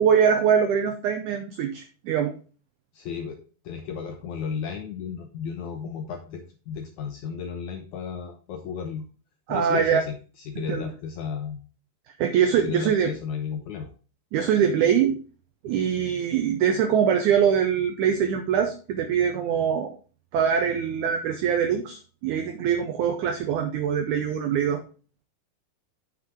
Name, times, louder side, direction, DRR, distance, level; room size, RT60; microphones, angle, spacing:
voice 1, 0.0-2.3 9.5-10.0 10.7-10.9 12.2-13.1 14.3-15.2 15.6-19.9 20.3-24.8, right 8 dB, 85° right, 7 dB, 1.7 m, -23 dB
voice 2, 2.9-3.4 3.6-9.1 9.5-10.2 10.5-11.6 12.6-13.9, left 6 dB, 80° left, 4 dB, 1.7 m, -33 dB
6.5 x 6.0 x 4.8 m, 0.38 s
omnidirectional pair, 4.3 m